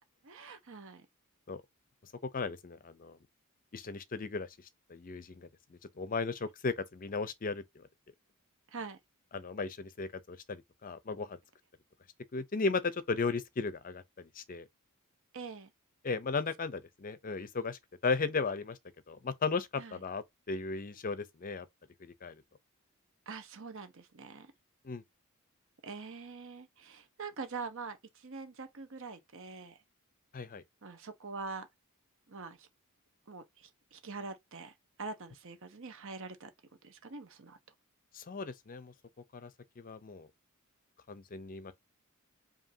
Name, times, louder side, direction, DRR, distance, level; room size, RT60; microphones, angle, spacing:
voice 1, 0.2-1.1 8.7-9.0 15.3-15.7 19.8-20.0 23.3-24.5 25.8-29.8 30.8-31.7 32.3-32.7 33.3-36.5 36.8-37.6, right 4 dB, 60° right, 0.9 m, -44 dB
voice 2, 2.3-3.2 3.7-4.5 4.9-7.9 9.3-11.4 12.3-14.7 16.0-18.8 19.1-21.7 22.0-22.4 24.8-25.0 30.3-30.6 38.1-38.9 39.3-39.5 39.8-40.3 41.1-41.7, left 4 dB, 40° left, 0.5 m, -36 dB
5.2 x 2.7 x 2.7 m
head